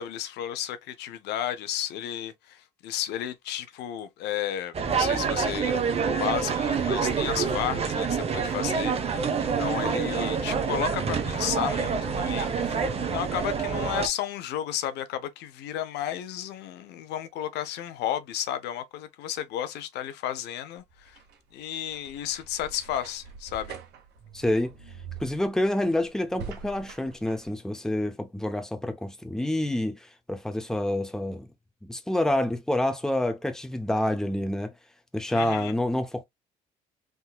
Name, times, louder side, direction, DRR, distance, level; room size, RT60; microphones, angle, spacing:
voice 1, 0.0-5.7 6.2-9.3 9.6-21.2 21.5-23.8 35.3-35.7, left 11 dB, 80° left, 0.7 m, -33 dB
sound 1, 4.7-14.1, right 6 dB, 35° right, 0.9 m, -27 dB
sound 2, 20.8-27.5, right 6 dB, 80° right, 1.2 m, -44 dB
voice 2, 24.3-24.7 25.2-31.5 31.8-34.7 35.1-36.2, left 1 dB, 5° left, 0.6 m, -28 dB
3.7 x 2.8 x 2.2 m
cardioid pair, 110°, 17 cm